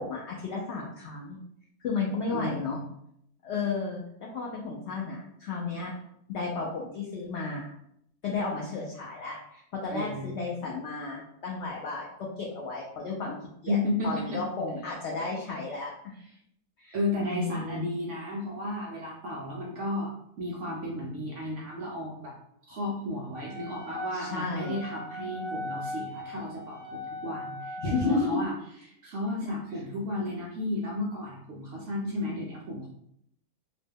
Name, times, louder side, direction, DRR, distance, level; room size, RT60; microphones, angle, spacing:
voice 1, 0.0-1.4 1.8-2.8 3.4-4.0 4.3-5.9 6.3-7.7 8.2-13.4 13.6-13.8 14.0-16.1 16.8-17.9 24.1-24.8 27.8-28.4, left 4 dB, 85° left, -3 dB, 0.6 m, -33 dB
voice 2, 2.3-2.8 9.9-10.3 13.7-14.4 16.1-16.3 16.9-22.3 22.6-28.5 29.0-32.9, left 1 dB, 65° right, -3 dB, 0.7 m, -33 dB
Wind instrument woodwind instrument, 23.3-28.4, left 1 dB, 35° left, 0.9 m, -39 dB
2.9 x 2.1 x 3.4 m, 0.74 s
omnidirectional pair, 1.8 m